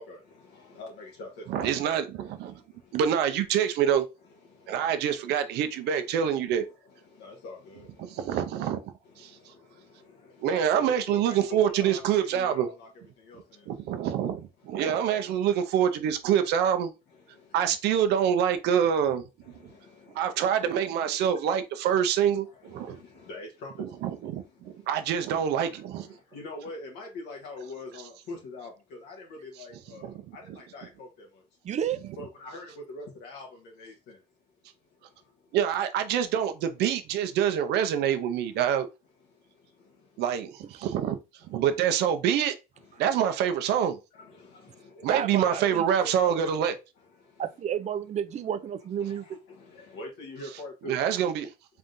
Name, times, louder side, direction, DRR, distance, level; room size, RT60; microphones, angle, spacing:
voice 1, 0.0-1.8 2.2-3.0 4.2-6.4 6.7-8.4 9.0-14.1 14.6-14.8 17.1-18.1 18.8-18.9 19.4-20.4 21.8-22.0 22.3-25.0 25.7-31.5 32.2-34.2 34.8-35.6 39.2-40.2 41.5-41.6 42.8-43.1 44.1-45.2 46.0-46.5 47.0-47.4 47.8-47.9 48.5-48.6 49.0-51.1, left 2 dB, 80° left, 1.1 m, -45 dB
voice 2, 1.5-2.5 2.9-4.1 4.7-6.7 8.0-9.3 10.4-12.7 13.7-16.9 17.5-19.2 20.2-23.0 24.0-26.1 30.0-30.1 35.5-38.9 40.2-41.2 41.5-42.6 43.0-44.0 45.0-46.7 50.9-51.5, right 9 dB, 80° right, 0.6 m, -26 dB
voice 3, 31.6-32.2 45.1-45.6 47.4-49.4, right 9 dB, 45° right, 0.5 m, -31 dB
3.7 x 3.4 x 2.6 m
cardioid pair, 110°, 17 cm